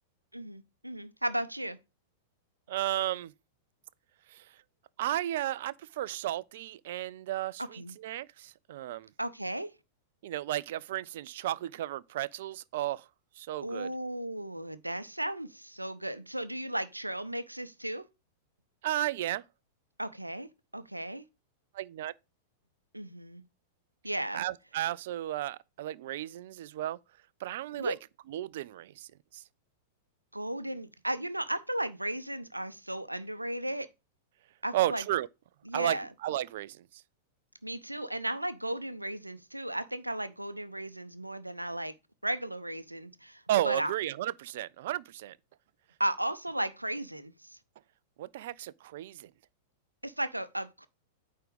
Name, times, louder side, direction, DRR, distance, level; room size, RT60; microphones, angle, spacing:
voice 1, 0.3-1.8 7.6-7.9 9.2-9.7 13.6-18.1 20.0-21.2 22.9-23.4 24.0-24.4 27.8-28.0 30.3-33.9 34.6-35.0 35.7-36.1 37.6-41.9 42.2-43.9 46.0-47.6 50.0-50.9, right 1 dB, 90° right, 0.7 m, -35 dB
voice 2, 2.7-3.3 4.3-4.4 5.0-9.1 10.2-13.0 13.4-13.9 18.8-19.4 21.7-22.1 24.3-27.0 27.4-27.9 28.3-29.1 29.3-29.4 34.7-35.3 35.7-36.8 43.5-45.4 48.2-49.3, right 13 dB, 55° right, 0.4 m, -33 dB
9.0 x 3.7 x 5.1 m
figure-of-eight pair, 95°, 0 cm